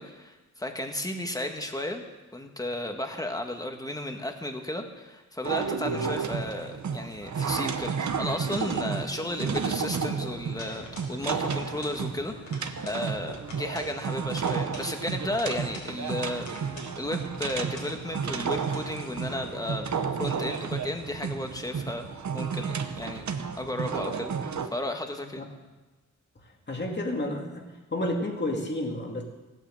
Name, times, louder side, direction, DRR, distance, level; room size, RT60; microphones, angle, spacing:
voice 1, 0.0-2.1 2.3-16.5 16.9-19.9 20.2-22.1 22.3-23.3 23.6-25.4, left 1 dB, 10° left, 4 dB, 1.5 m, -34 dB
sound 1, 5.4-24.7, right 6 dB, 70° right, 1.0 m, -32 dB
sound 2, 10.6-11.1 11.4-12.0 12.3-13.0 13.4-13.9 14.4-15.9 16.4-16.9 17.3-17.9 18.3-18.9, left 2 dB, 80° left, 4.7 m, -46 dB
voice 2, 26.7-27.6 27.9-29.2, left 1 dB, 35° left, 1 dB, 2.3 m, -30 dB
16.5 x 9.0 x 7.6 m, 1.2 s
wide cardioid pair, 125°, 30 cm